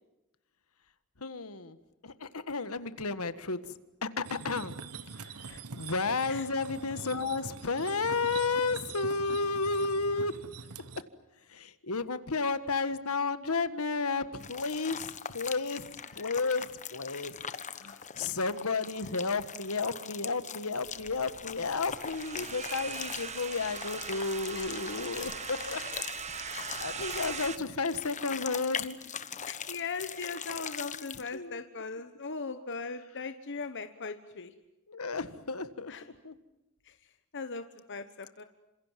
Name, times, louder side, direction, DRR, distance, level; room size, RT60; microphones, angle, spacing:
voice 1, 1.2-1.8 2.0-3.6 4.0-4.7 5.2-5.3 5.8-10.3 11.5-15.9 16.1-17.4 17.8-26.0 26.3-29.0 30.9-31.6 34.9-35.9 36.2-36.3, left 4 dB, 70° left, 12 dB, 1.6 m, -32 dB
sound 1, 4.2-11.0, right 5 dB, 85° right, 1.3 m, -44 dB
sound 2, 14.4-31.3, left 7 dB, 35° left, 1.2 m, -42 dB
sound 3, 20.8-27.6, right 6 dB, 30° right, 1.4 m, -40 dB
voice 2, 24.5-25.0 25.6-25.7 29.5-34.5 35.9-36.0 37.3-38.4, left 4 dB, 55° left, 9 dB, 1.3 m, -39 dB
28.5 x 27.0 x 7.6 m, 0.96 s
head